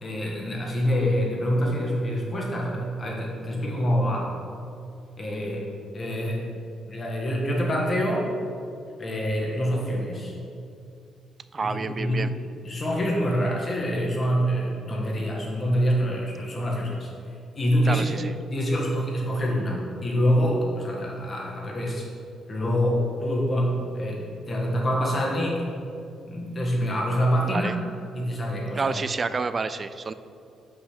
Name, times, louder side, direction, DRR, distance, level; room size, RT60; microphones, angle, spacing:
voice 1, 0.0-4.3 5.2-5.7 5.9-6.5 6.8-8.3 9.0-10.3 11.6-12.3 12.6-17.1 17.5-18.2 18.5-22.1 22.5-25.7 26.3-27.7 28.1-28.9, equal, 35° left, -2 dB, 1.5 m, -26 dB
voice 2, 11.5-12.3 17.8-18.3 27.5-27.7 28.8-30.1, right 4 dB, 35° right, 13 dB, 0.3 m, -29 dB
5.9 x 5.4 x 5.0 m, 2.5 s
cardioid pair, 90°, 0 cm